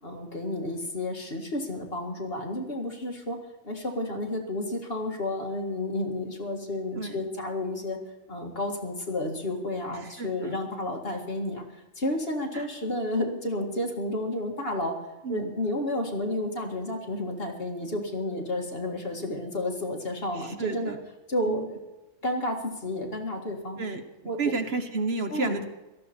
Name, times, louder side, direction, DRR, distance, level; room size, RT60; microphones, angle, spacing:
voice 1, 0.0-8.0 8.3-11.6 12.0-15.0 15.3-20.9 21.3-21.8 22.2-23.8 24.3-24.4 25.3-25.6, left 1 dB, 45° left, 2 dB, 2.1 m, -31 dB
voice 2, 10.2-10.6 12.5-12.7 15.2-15.5 20.3-21.0 21.5-21.7 23.8-24.0 24.4-25.6, right 4 dB, 55° right, 7 dB, 1.2 m, -31 dB
17.5 x 13.5 x 4.4 m, 1.1 s
omnidirectional pair, 1.3 m